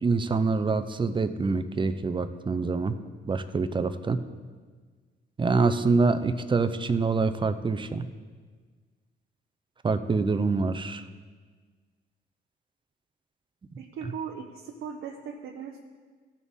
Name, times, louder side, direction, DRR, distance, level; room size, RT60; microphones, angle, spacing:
voice 1, 0.0-3.0 3.3-4.2 5.4-8.1 9.8-11.1, right 4 dB, 25° right, 11 dB, 0.6 m, -25 dB
voice 2, 13.8-15.8, right 6 dB, 75° right, 1 dB, 0.9 m, -38 dB
15.5 x 6.3 x 3.7 m, 1.5 s
cardioid pair, 90°, 20 cm